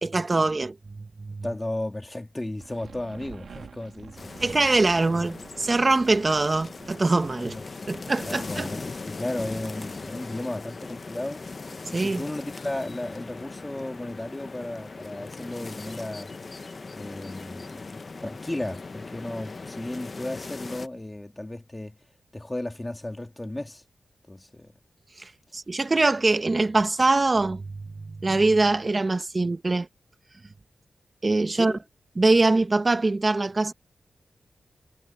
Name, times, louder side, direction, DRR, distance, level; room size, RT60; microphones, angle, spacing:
voice 1, 0.0-1.4 4.4-7.6 7.9-8.7 11.9-12.2 25.2-27.7 28.2-29.9 31.2-31.7 32.2-33.7, right 3 dB, 35° right, 1.0 m, -23 dB
voice 2, 1.4-4.4 7.4-11.6 11.9-16.3 16.9-22.0 22.3-23.8 24.3-24.7 31.5-31.8, left 1 dB, 20° left, 2.9 m, -35 dB
sound 1, 2.6-10.2, right 6 dB, 85° right, 2.1 m, -48 dB
sound 2, 4.2-20.9, left 3 dB, 45° left, 0.9 m, -39 dB
cardioid pair, 75°, 0 cm